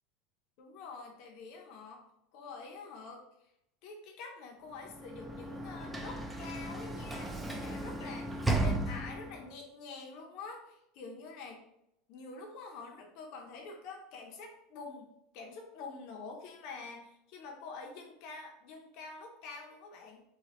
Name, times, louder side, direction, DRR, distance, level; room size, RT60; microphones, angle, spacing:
voice 1, 0.6-2.0 2.3-3.2 3.8-11.6 12.1-15.1 15.3-20.2, left 4 dB, 55° left, 1 dB, 0.7 m, -47 dB
Sliding door / Slam, 4.8-9.5, right 2 dB, 5° right, 0.4 m, -35 dB
2.9 x 2.3 x 4.2 m, 0.82 s
supercardioid pair, 140°, 0 cm